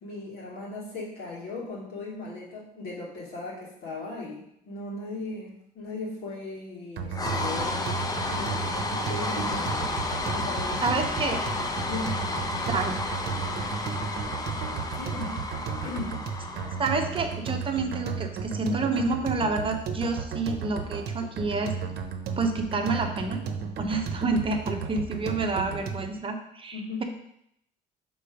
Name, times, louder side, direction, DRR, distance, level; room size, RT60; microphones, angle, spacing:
voice 1, 0.0-8.0 8.3-8.6 8.9-11.0 11.3-11.4 11.9-12.2 14.9-15.3 15.8-16.2 26.7-27.0, left 3 dB, 75° left, -5 dB, 2.4 m, -37 dB
sound 1, 7.0-26.2, right 6 dB, 70° right, 0.8 m, -34 dB
sound 2, 7.1-17.4, left 2 dB, 20° left, 0.6 m, -32 dB
voice 2, 10.8-11.4 12.7-12.9 16.8-21.7 22.4-23.4 23.8-27.0, right 3 dB, 30° right, 4 dB, 0.8 m, -28 dB
5.4 x 3.9 x 5.0 m, 0.75 s
cardioid pair, 110°, 17 cm